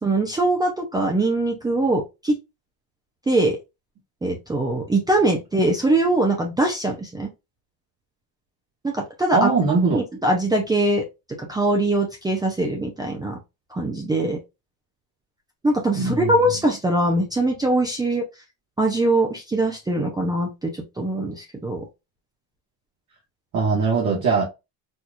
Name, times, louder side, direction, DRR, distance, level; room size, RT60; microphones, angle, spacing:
voice 1, 0.0-2.3 3.3-3.6 4.2-7.3 8.8-9.5 9.9-11.0 11.4-13.4 13.7-14.4 15.6-18.2 18.8-21.8, right 2 dB, 10° right, 0.5 m, -22 dB
voice 2, 9.3-10.0 15.9-16.3 23.5-24.4, right 4 dB, 50° right, 1.4 m, -20 dB
4.4 x 2.4 x 2.4 m
cardioid pair, 150°, 40 cm